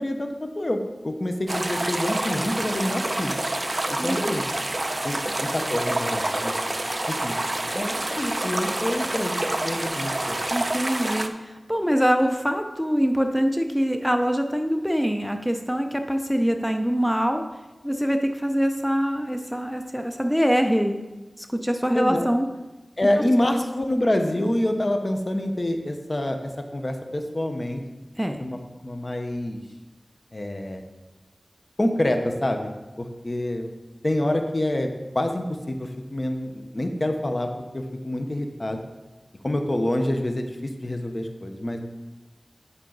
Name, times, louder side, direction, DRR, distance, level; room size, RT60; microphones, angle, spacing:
voice 1, 0.0-3.3 4.0-4.4 5.0-6.5 7.2-7.4 7.7-10.4 21.9-22.3 23.0-27.8 28.4-28.6 28.8-29.6 30.3-30.8 31.8-32.7 33.0-33.7 34.0-38.8 39.4-41.8, left 1 dB, 45° left, 5 dB, 1.0 m, -27 dB
sound 1, 1.5-11.3, right 1 dB, 40° right, 0.6 m, -27 dB
voice 2, 4.0-4.4 5.3-5.4 10.5-17.4 17.8-21.0 21.4-22.5 23.4-23.5 28.2-28.4, equal, ahead, 5 dB, 0.6 m, -24 dB
10.5 x 5.6 x 4.0 m, 1.1 s
wide cardioid pair, 45°, 0 cm